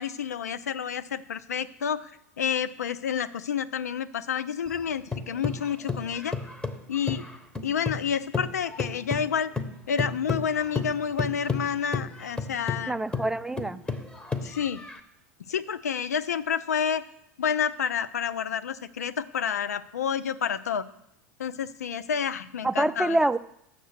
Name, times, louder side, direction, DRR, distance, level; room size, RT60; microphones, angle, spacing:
voice 1, 0.0-2.1 2.4-6.3 6.9-7.2 7.6-9.5 9.9-13.0 14.4-14.8 15.5-17.0 17.4-20.8 21.4-23.2, left 7 dB, 90° left, 14 dB, 0.5 m, -29 dB
sound 1, 4.7-8.1 8.3-15.0, left 4 dB, 10° left, 1.0 m, -32 dB
voice 2, 12.9-13.8 22.6-23.4, right 1 dB, 5° right, 13 dB, 0.3 m, -25 dB
7.8 x 6.5 x 6.6 m, 0.79 s
hypercardioid pair, 95°, 8 cm